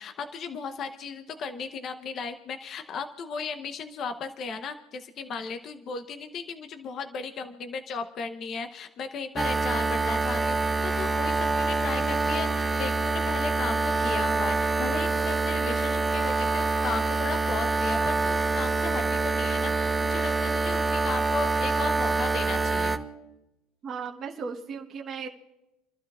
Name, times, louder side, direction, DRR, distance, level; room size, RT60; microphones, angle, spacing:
voice 1, 0.0-23.0, left 5 dB, 45° left, 7 dB, 0.9 m, -36 dB
sound 1, 9.4-23.0, right 3 dB, 15° right, 0.9 m, -26 dB
voice 2, 23.8-25.3, right 5 dB, 35° right, 0 dB, 1.2 m, -36 dB
29.0 x 12.0 x 2.4 m, 0.95 s
cardioid pair, 130°, 0 cm